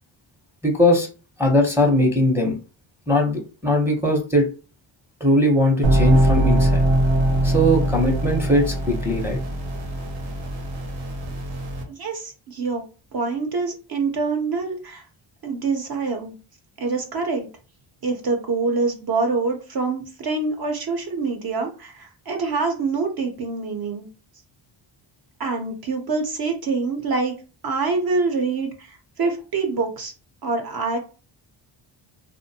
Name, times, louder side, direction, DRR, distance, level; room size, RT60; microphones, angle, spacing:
voice 1, 0.6-1.1 1.4-2.6 3.1-4.5 5.2-6.8 7.4-9.4, left 1 dB, 5° right, 1 dB, 0.6 m, -20 dB
sound 1, 5.8-11.8, right 1 dB, 80° right, 0.8 m, -21 dB
voice 2, 11.9-12.8 13.1-15.0 15.4-16.3 16.8-17.5 18.0-24.1 25.4-27.3 27.6-30.1 30.4-31.0, right 4 dB, 50° right, 3 dB, 0.6 m, -25 dB
2.5 x 2.1 x 2.7 m, 0.34 s
cardioid pair, 95°, 48 cm